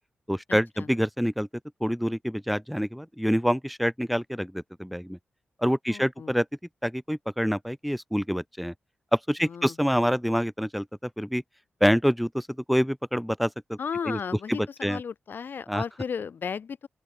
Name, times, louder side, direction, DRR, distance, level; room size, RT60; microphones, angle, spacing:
voice 1, 0.3-1.5 1.8-5.2 5.6-6.5 6.8-8.7 9.1-10.9 11.2-11.4 11.8-13.8 14.1-14.2 14.5-15.0 15.7-15.8, equal, ahead, 0.7 m, -26 dB
voice 2, 5.9-6.3 9.4-9.7 13.8-16.9, left 6 dB, 60° left, 0.4 m, -34 dB
open air
cardioid pair, 55°, 4 cm